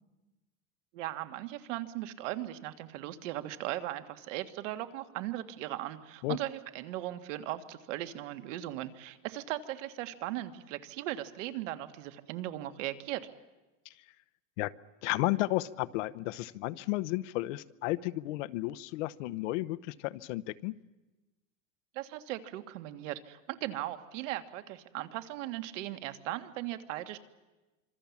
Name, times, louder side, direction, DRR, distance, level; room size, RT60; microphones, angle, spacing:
voice 1, 0.9-13.2 21.9-27.2, right 14 dB, 65° right, 9 dB, 1.9 m, -38 dB
voice 2, 15.0-20.7, left 18 dB, 60° left, 14 dB, 0.9 m, -33 dB
26.0 x 25.0 x 7.3 m, 1.1 s
supercardioid pair, 155°, 40 cm